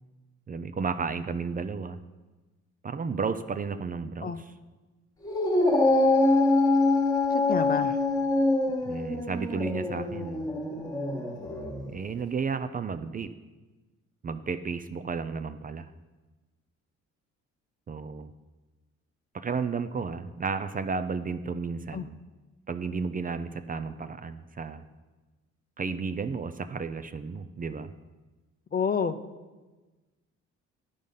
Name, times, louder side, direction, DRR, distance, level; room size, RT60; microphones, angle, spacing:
voice 1, 0.5-2.0 2.8-4.3 8.9-10.5 11.9-13.3 14.2-15.9 17.9-18.3 19.3-22.1 22.7-24.8 25.8-27.9, right 5 dB, 30° right, 11 dB, 0.4 m, -33 dB
Dog, 5.2-11.9, left 2 dB, 10° left, 1.4 m, -25 dB
voice 2, 7.3-8.0 21.9-22.1 28.7-29.2, left 6 dB, 30° left, 11 dB, 0.5 m, -29 dB
11.0 x 5.2 x 5.4 m, 1.2 s
cardioid pair, 90°, 30 cm